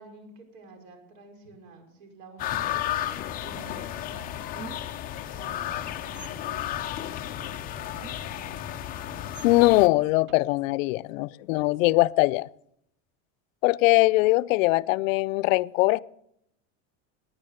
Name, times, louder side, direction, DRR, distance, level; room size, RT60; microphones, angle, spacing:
voice 1, 0.0-5.0 5.3-8.7, right 2 dB, 75° right, 5.2 m, -50 dB
sound 1, 2.4-9.9, left 12 dB, 20° left, 0.6 m, -33 dB
sound 2, 4.6-5.0 6.1-6.4 8.0-8.4 9.3-9.5 10.3-10.4, right 7 dB, 30° right, 0.5 m, -45 dB
voice 2, 9.4-12.5 13.6-16.0, left 20 dB, 80° left, 0.6 m, -21 dB
19.0 x 10.0 x 6.7 m
cardioid pair, 175°, 39 cm